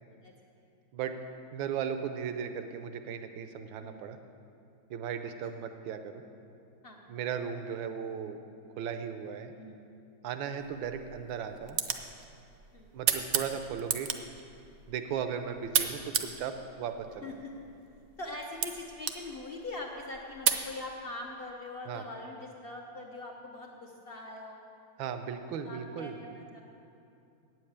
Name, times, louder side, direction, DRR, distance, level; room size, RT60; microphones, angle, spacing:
voice 1, 1.5-4.2 4.9-6.2 7.1-8.4 8.8-9.5 10.2-11.8 12.9-14.1 14.9-17.3 21.9-22.0 25.0-26.2, right 7 dB, 80° right, 8 dB, 1.4 m, -36 dB
voice 2, 3.8-4.1 6.8-7.1 9.5-9.9 12.7-13.0 17.2-17.6 18.2-24.6 25.6-26.6, left 2 dB, 55° left, 0 dB, 0.6 m, -42 dB
sound 1, 10.6-20.7, right 8 dB, 65° right, 0.9 m, -35 dB
8.8 x 7.8 x 8.6 m, 2.7 s
omnidirectional pair, 2.1 m